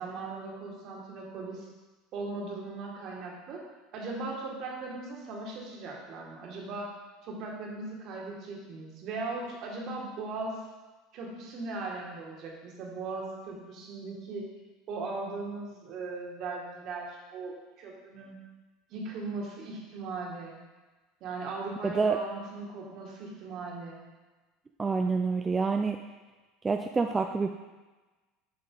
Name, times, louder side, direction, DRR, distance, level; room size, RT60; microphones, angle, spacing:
voice 1, 0.0-1.7 2.1-3.6 3.9-6.9 7.2-10.6 11.1-14.5 14.9-18.4 18.9-20.6 21.2-24.0, right 3 dB, 55° right, -2 dB, 2.0 m, -38 dB
voice 2, 21.8-22.2 24.8-26.0 26.6-27.6, right 4 dB, 20° right, 4 dB, 0.4 m, -27 dB
7.9 x 5.2 x 3.9 m, 1.2 s
hypercardioid pair, 85°, 0 cm